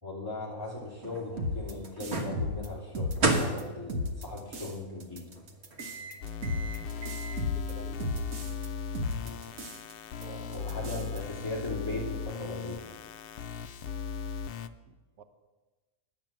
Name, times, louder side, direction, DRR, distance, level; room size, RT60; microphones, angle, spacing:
voice 1, 0.0-5.2 10.6-12.8, left 2 dB, 15° left, -5 dB, 2.9 m, -38 dB
sound 1, 0.6-7.4, right 2 dB, 50° right, 1.5 m, -35 dB
sound 2, 1.4-3.6 3.9-4.7 5.0-8.7 8.9-9.9 10.2-10.3 10.5-11.2, left 2 dB, 70° right, 1.5 m, -35 dB
sound 3, 6.2-14.7, left 6 dB, 85° left, 0.5 m, -38 dB
voice 2, 7.5-8.2 10.2-10.7 14.9-15.2, right 5 dB, 90° right, 8 dB, 1.3 m, -48 dB
9.7 x 7.3 x 7.4 m, 1.2 s
omnidirectional pair, 1.5 m